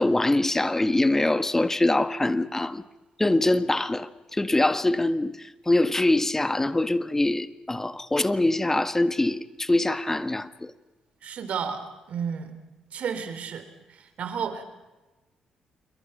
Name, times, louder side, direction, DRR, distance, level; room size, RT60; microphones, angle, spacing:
voice 1, 0.0-2.8 3.2-10.7, left 2 dB, 15° left, 1.6 m, -24 dB
voice 2, 11.2-11.8 12.1-12.5 12.9-13.6 14.2-14.6, right 7 dB, 65° right, 3.6 m, -31 dB
28.5 x 23.0 x 5.7 m
hypercardioid pair, 50°, 2 cm